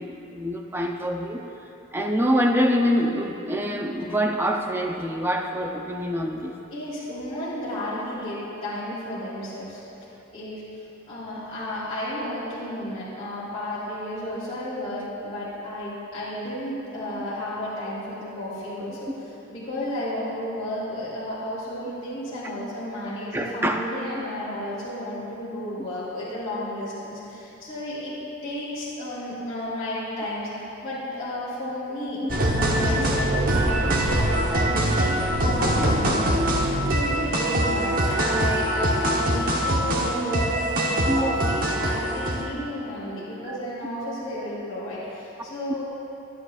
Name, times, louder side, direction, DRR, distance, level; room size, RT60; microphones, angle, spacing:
voice 1, 0.0-1.5 1.9-6.6 17.1-17.2 19.1-19.2 23.3-23.8 41.1-41.3 43.5-43.6, equal, 10° right, 2 dB, 0.6 m, -25 dB
voice 2, 6.7-9.8 10.3-10.6 11.1-19.1 19.5-28.2 28.4-45.8, left 1 dB, 25° left, -12 dB, 2.9 m, -32 dB
sound 1, 32.3-42.5, right 1 dB, 40° right, 1.1 m, -23 dB
26.0 x 9.8 x 2.5 m, 2.9 s
head